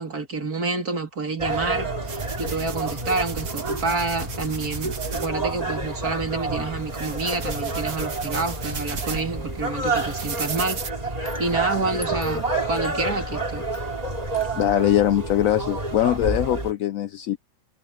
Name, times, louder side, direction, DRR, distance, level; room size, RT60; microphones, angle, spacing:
voice 1, 0.0-10.8 11.2-13.6, right 3 dB, 55° right, 3.2 m, -28 dB
sound 1, 1.4-16.7, right 3 dB, 20° right, 3.2 m, -29 dB
sound 2, 2.1-10.9, right 5 dB, 80° right, 3.0 m, -36 dB
sound 3, 11.2-16.2, left 1 dB, 10° left, 1.2 m, -41 dB
voice 2, 14.6-17.4, left 12 dB, 85° left, 0.7 m, -22 dB
omnidirectional pair, 2.0 m